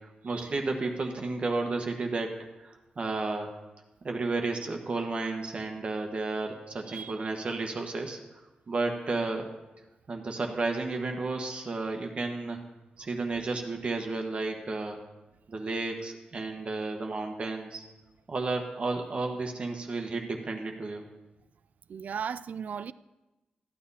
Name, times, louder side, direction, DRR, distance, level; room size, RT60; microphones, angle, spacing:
voice 1, 0.2-2.3 2.6-3.5 4.0-8.4 8.7-9.5 10.1-12.6 13.0-15.0 15.5-17.8 18.3-21.0, right 3 dB, 45° right, 1.2 m, -32 dB
voice 2, 6.9-7.3 13.0-13.1 21.9-22.9, right 7 dB, 65° right, 0.3 m, -37 dB
14.0 x 9.5 x 4.2 m
wide cardioid pair, 115°, 3 cm